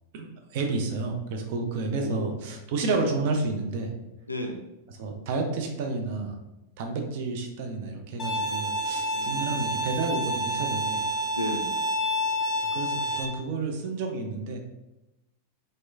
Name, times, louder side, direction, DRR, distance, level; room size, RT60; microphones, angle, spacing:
voice 1, 0.1-3.9 4.9-6.4 6.8-11.0 12.7-14.6, right 3 dB, 50° right, 3 dB, 0.4 m, -30 dB
voice 2, 1.9-2.3 4.3-4.6 9.1-9.6 11.3-11.7, left 1 dB, 85° left, 3 dB, 0.4 m, -33 dB
Bowed string instrument, 8.2-13.3, equal, 25° left, 0.5 m, -28 dB
2.9 x 2.0 x 2.3 m, 0.95 s
figure-of-eight pair, 90°, 0 cm